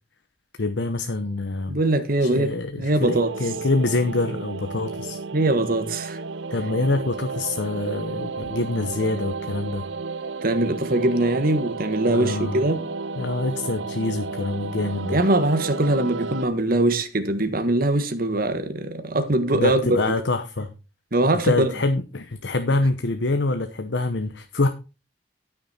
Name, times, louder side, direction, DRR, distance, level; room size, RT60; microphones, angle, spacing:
voice 1, 0.6-1.8 2.2-5.2 6.5-9.8 12.1-12.6 13.2-15.2 19.5-20.7 21.4-24.7, left 2 dB, 70° left, 0.9 m, -25 dB
voice 2, 1.7-3.4 5.3-6.2 10.4-12.9 15.1-19.8 20.1-20.2 21.1-21.7, right 2 dB, 50° right, 1.5 m, -22 dB
sound 1, 3.0-16.5, right 4 dB, 80° right, 0.6 m, -33 dB
13.0 x 6.4 x 4.3 m
head